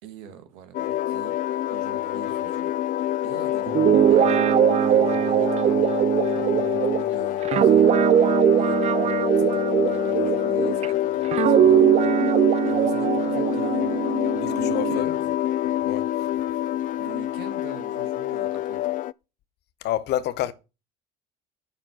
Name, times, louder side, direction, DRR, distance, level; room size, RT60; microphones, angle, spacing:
voice 1, 0.0-1.3 1.7-2.7 3.2-6.1 6.3-7.9 8.6-15.2 17.0-18.8, right 8 dB, 75° right, 1.7 m, -45 dB
sound 1, 0.7-19.1, left 14 dB, 45° left, 0.4 m, -26 dB
Guitar, 3.7-10.9 11.3-15.0, right 10 dB, 35° right, 0.4 m, -20 dB
voice 2, 14.3-15.2 15.8-16.3 19.8-20.5, left 13 dB, 60° left, 0.9 m, -29 dB
10.5 x 4.5 x 6.1 m
hypercardioid pair, 65°, 19 cm